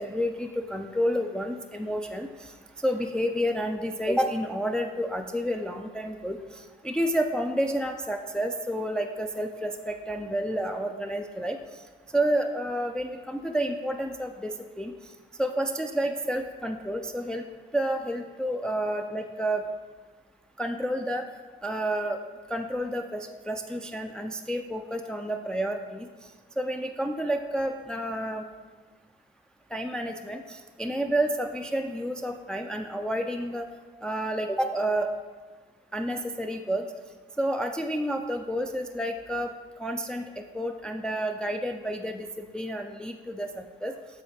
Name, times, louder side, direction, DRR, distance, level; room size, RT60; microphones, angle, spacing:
voice 1, 0.0-2.3 2.8-6.4 6.8-11.6 12.1-14.9 15.4-17.4 17.7-19.6 20.6-21.2 21.6-22.2 22.5-26.1 26.6-28.4 29.7-33.7 34.0-35.1 35.9-36.8 37.4-39.5 39.8-40.2 40.5-42.3 42.5-43.5 43.8-43.9, right 1 dB, 5° left, 4 dB, 0.3 m, -29 dB
7.6 x 4.0 x 3.4 m, 1.4 s
cardioid pair, 90°, 20 cm